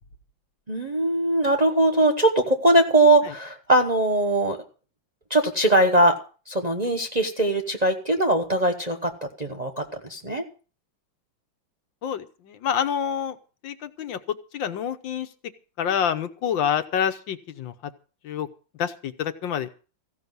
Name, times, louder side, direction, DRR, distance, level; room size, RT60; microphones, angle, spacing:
voice 1, 0.7-4.6 5.3-6.2 6.5-10.4, right 1 dB, 30° right, 4 dB, 0.9 m, -21 dB
voice 2, 12.0-13.4 13.6-14.2 14.5-15.3 15.8-17.7 18.2-18.5 18.8-19.7, left 8 dB, 75° left, 9 dB, 1.7 m, -27 dB
15.5 x 5.7 x 9.4 m, 0.37 s
omnidirectional pair, 2.1 m